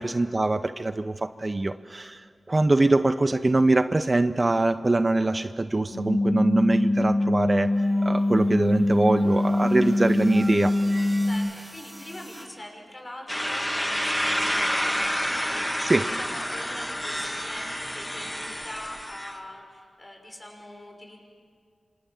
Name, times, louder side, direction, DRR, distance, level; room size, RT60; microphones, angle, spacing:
voice 1, 0.0-2.2 2.5-10.7 15.8-16.1, right 2 dB, 35° right, 11 dB, 0.7 m, -23 dB
sound 1, 5.9-11.3, left 1 dB, 70° left, 3.5 m, -23 dB
sound 2, 7.7-12.5, equal, 15° right, 5.9 m, -44 dB
voice 2, 11.3-14.9 15.2-21.2, left 1 dB, 25° left, 2 dB, 6.1 m, -43 dB
sound 3, 13.3-19.4, equal, 5° left, 2.4 m, -29 dB
27.0 x 26.0 x 7.3 m, 2.2 s
wide cardioid pair, 70°, 0 cm